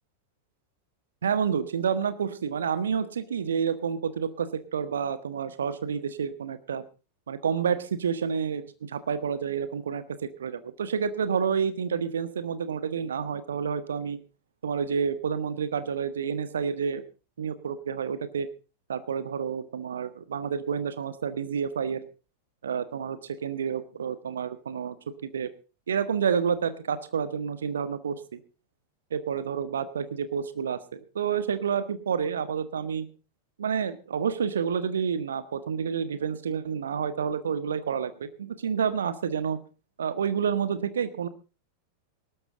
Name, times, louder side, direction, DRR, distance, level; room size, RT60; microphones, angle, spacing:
voice 1, 1.2-6.8 7.3-10.0 10.4-14.2 14.6-17.0 17.4-18.5 18.9-22.0 22.6-24.9 25.2-25.5 25.9-28.4 29.1-33.1 33.6-39.6 40.0-41.3, right 7 dB, 65° right, 12 dB, 1.4 m, -29 dB
18.5 x 13.0 x 3.8 m, 0.33 s
figure-of-eight pair, 90°, 0 cm